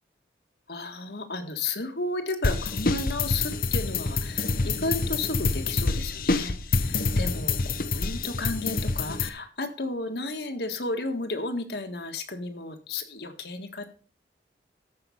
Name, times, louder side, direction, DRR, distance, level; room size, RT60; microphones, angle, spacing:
voice 1, 0.7-13.9, left 2 dB, 70° left, 6 dB, 1.7 m, -33 dB
sound 1, 2.4-9.3, left 3 dB, 55° left, 0.8 m, -27 dB
14.0 x 5.9 x 5.6 m, 0.37 s
head